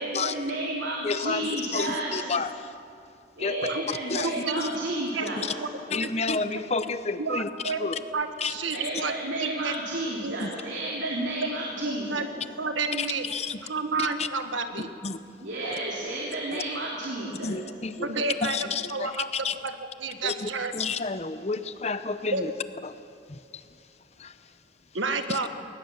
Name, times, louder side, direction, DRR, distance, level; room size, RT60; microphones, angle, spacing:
voice 1, 0.0-2.1 3.4-5.4 8.7-12.3 15.4-17.5, right 2 dB, 75° right, -4 dB, 3.2 m, -31 dB
voice 2, 1.0-2.7 3.4-3.6 3.9-4.8 5.4-5.5 5.9-8.0 8.4-8.6 10.4-10.5 13.0-13.6 14.0-14.3 15.0-15.2 15.6-15.7 16.5-16.6 17.4-19.5 20.2-22.5 22.8-23.0 23.3-23.7 24.2-24.5 25.3-25.4, left 4 dB, 35° left, 12 dB, 0.8 m, -31 dB
voice 3, 4.2-4.7 5.1-5.7 6.0-6.1 7.2-9.1 9.4-9.7 10.2-10.4 11.0-11.1 11.8-12.3 12.6-13.3 13.6-14.9 18.0-18.6 18.9-19.3 19.6-20.7 22.3-22.4 24.9-25.5, right 4 dB, 90° right, 8 dB, 1.5 m, -30 dB
20.5 x 19.5 x 7.3 m, 2.5 s
head